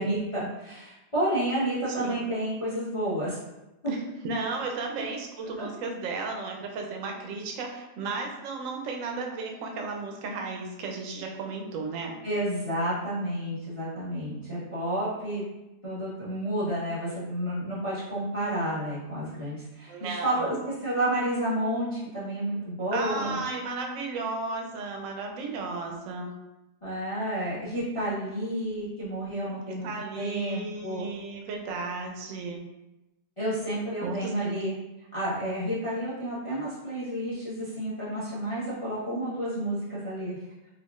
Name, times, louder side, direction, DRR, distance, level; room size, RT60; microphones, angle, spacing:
voice 1, 0.0-3.4 3.8-3.9 5.6-5.7 12.2-15.4 15.8-23.4 26.8-29.9 30.1-31.1 33.4-34.7 35.1-40.4, right 1 dB, 25° left, -9 dB, 0.7 m, -30 dB
voice 2, 4.2-12.2 19.9-20.6 22.9-26.3 29.7-32.6 34.0-34.5, right 3 dB, 65° right, 2 dB, 0.9 m, -34 dB
4.7 x 2.4 x 2.4 m, 0.96 s
omnidirectional pair, 1.8 m